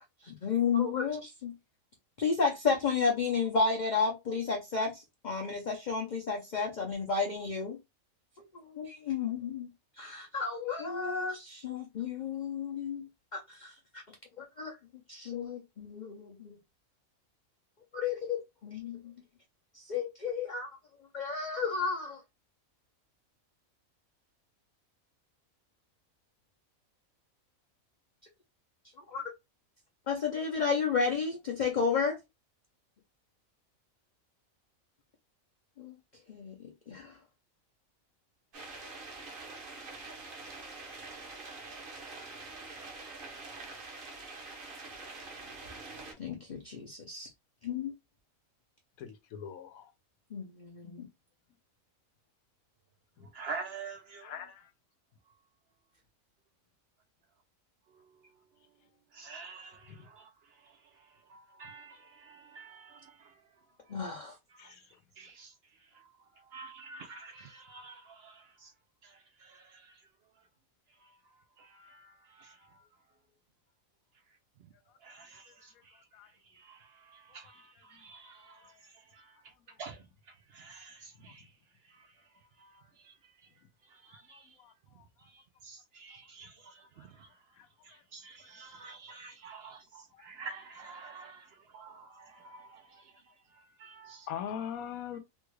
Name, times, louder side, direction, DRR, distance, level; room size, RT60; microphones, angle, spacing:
voice 1, 0.2-1.5 2.2-7.8 8.5-9.7 10.0-14.0 14.4-14.8 15.1-16.6 17.9-19.1 19.7-20.7 21.1-22.2 29.1-29.2 30.1-32.2 35.8-36.0 36.3-37.2 46.2-47.3 47.6-47.9 50.3-51.1 63.9-64.4, left 5 dB, 45° left, 0.6 m, -32 dB
sound 1, 38.5-46.1, right 3 dB, 45° right, 0.9 m, -45 dB
voice 2, 49.0-49.9 50.8-50.9 54.2-54.6 64.6-64.8 76.1-76.3 81.2-81.3 84.1-84.7 90.1-90.2 94.3-95.2, left 8 dB, 85° left, 1.1 m, -41 dB
voice 3, 53.3-54.4 59.1-60.3 61.3-63.3 64.6-64.7 65.2-65.5 65.9-66.0 66.5-68.7 69.0-69.9 71.6-72.6 75.0-75.9 76.5-78.7 79.1-79.3 79.8-80.0 80.5-81.5 82.6-83.1 83.9-84.5 85.6-87.3 87.8-93.1 93.8-94.3, right 4 dB, 65° right, 0.6 m, -48 dB
3.5 x 2.3 x 3.1 m
omnidirectional pair, 1.4 m